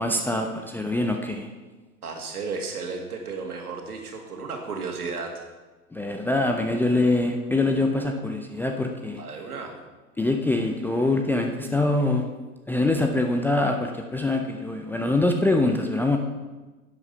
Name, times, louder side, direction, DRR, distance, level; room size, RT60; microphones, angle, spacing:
voice 1, 0.0-1.5 5.9-9.2 10.2-12.3 12.7-16.2, left 2 dB, 5° left, 2 dB, 0.5 m, -24 dB
voice 2, 2.0-5.4 9.2-9.7, right 4 dB, 75° right, 2 dB, 2.3 m, -33 dB
11.0 x 8.3 x 5.6 m, 1.2 s
figure-of-eight pair, 95°, 45 cm